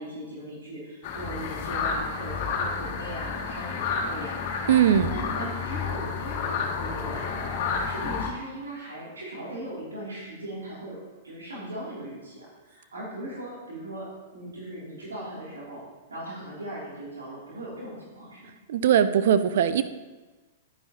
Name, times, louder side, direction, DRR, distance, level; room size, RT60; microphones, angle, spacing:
voice 1, 0.0-11.0 11.2-15.8 16.1-18.5, right 1 dB, 80° right, -7 dB, 2.7 m, -39 dB
sound 1, 1.0-8.3, left 5 dB, 45° left, 1.4 m, -30 dB
voice 2, 4.7-5.1 18.7-19.8, right 9 dB, 60° right, 11 dB, 0.5 m, -20 dB
10.5 x 9.8 x 2.9 m, 1.2 s
figure-of-eight pair, 105°, 0 cm